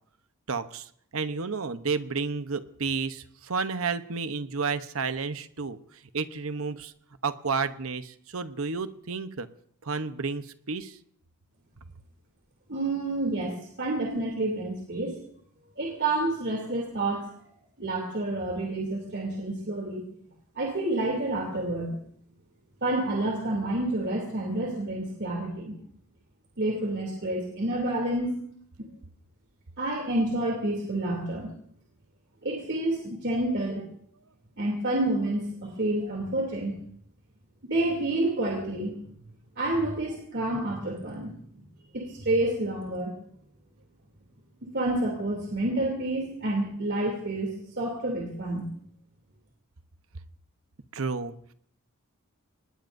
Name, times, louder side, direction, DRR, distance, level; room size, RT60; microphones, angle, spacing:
voice 1, 0.5-5.8 6.1-6.9 7.2-9.5 9.8-11.0 50.9-51.5, right 4 dB, 70° right, 10 dB, 0.9 m, -31 dB
voice 2, 12.7-15.1 15.8-17.2 17.8-20.0 20.5-22.0 22.8-25.7 26.6-28.4 29.8-31.5 32.4-33.8 34.6-36.7 37.7-38.9 39.6-41.3 41.9-43.1 44.7-48.6, right 1 dB, 50° right, -1 dB, 3.0 m, -29 dB
25.5 x 20.0 x 2.7 m, 0.65 s
head